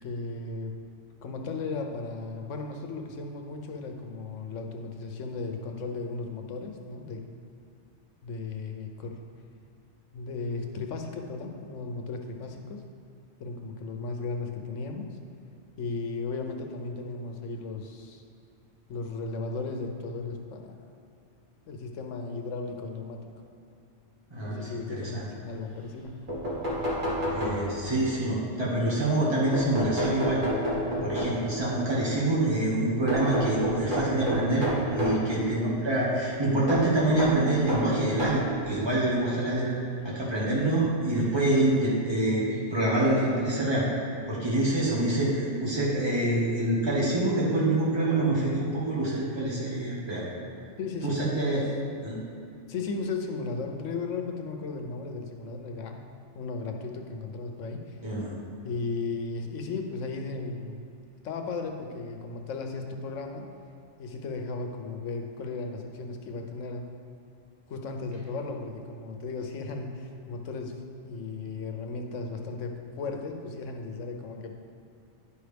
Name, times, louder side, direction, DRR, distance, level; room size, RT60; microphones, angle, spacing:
voice 1, 0.0-0.7 1.2-7.2 8.2-9.2 10.1-12.8 13.4-15.1 15.8-18.2 18.9-20.8 21.7-23.3 24.4-26.2 35.1-35.3 50.8-51.7 52.7-56.0 56.3-58.0 58.6-60.8 61.2-63.5 64.0-66.9 67.7-74.5, left 3 dB, 80° left, 4 dB, 1.1 m, -35 dB
voice 2, 24.3-25.2 27.3-30.4 31.0-39.7 40.0-42.4 42.7-43.8 44.3-50.3 51.0-51.6 52.0-52.2 58.0-58.3, right 1 dB, 20° right, -6 dB, 1.6 m, -26 dB
sound 1, 26.0-26.1 26.3-28.0 29.5-31.6 33.1-35.3 36.7-38.6 39.4-39.5 40.8-40.9 41.3-41.4, equal, 45° right, 1.5 m, -30 dB
10.5 x 5.1 x 3.4 m, 2.6 s
omnidirectional pair, 1.3 m